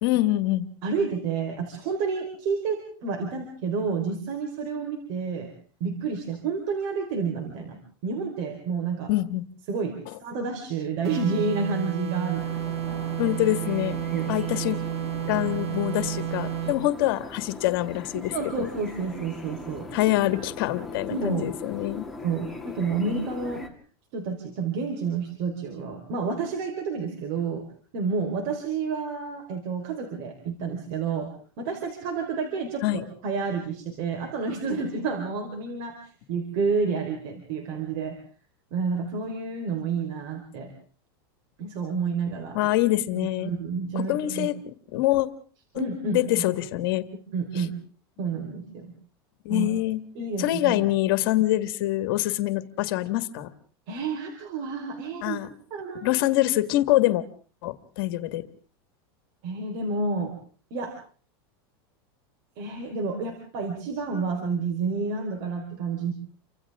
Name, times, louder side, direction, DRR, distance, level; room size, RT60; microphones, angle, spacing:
voice 1, 0.0-0.7 9.1-9.4 13.2-14.0 14.3-14.8 15.3-18.7 19.9-22.1 32.8-33.0 42.5-43.5 44.0-45.3 45.8-47.1 47.6-47.7 49.5-50.0 50.4-53.5 55.2-55.5 56.0-57.2 57.6-58.4, left 16 dB, 65° left, 11 dB, 1.8 m, -25 dB
voice 2, 0.8-5.5 5.8-9.1 9.7-13.1 14.1-14.3 18.1-19.9 21.1-21.4 22.2-23.6 24.1-27.6 27.9-32.8 33.2-36.0 36.3-38.2 38.7-40.7 41.6-42.6 43.1-44.5 45.7-46.4 47.3-47.7 48.2-48.9 49.5-49.7 50.1-50.8 53.9-55.4 55.7-56.2 59.4-60.4 60.7-60.9 62.6-66.1, right 4 dB, 55° right, 4 dB, 4.5 m, -30 dB
sound 1, 11.0-16.9, right 11 dB, 85° right, 6.0 m, -31 dB
sound 2, 12.3-23.7, left 2 dB, ahead, 2.7 m, -40 dB
30.0 x 25.0 x 3.7 m, 0.44 s
supercardioid pair, 145°, 13 cm